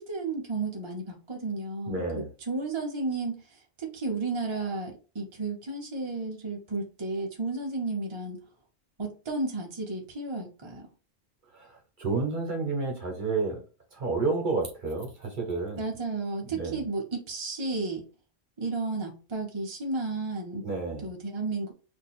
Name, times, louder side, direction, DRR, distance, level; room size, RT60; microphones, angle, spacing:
voice 1, 0.0-8.4 9.0-10.9 15.8-18.1 18.6-20.7 21.0-21.7, right 3 dB, 30° right, 0 dB, 0.6 m, -33 dB
voice 2, 1.9-2.3 11.5-13.6 13.9-15.8 16.5-16.8 20.6-21.1, right 3 dB, 50° right, 2 dB, 1.2 m, -30 dB
2.6 x 2.6 x 4.2 m, 0.35 s
omnidirectional pair, 1.1 m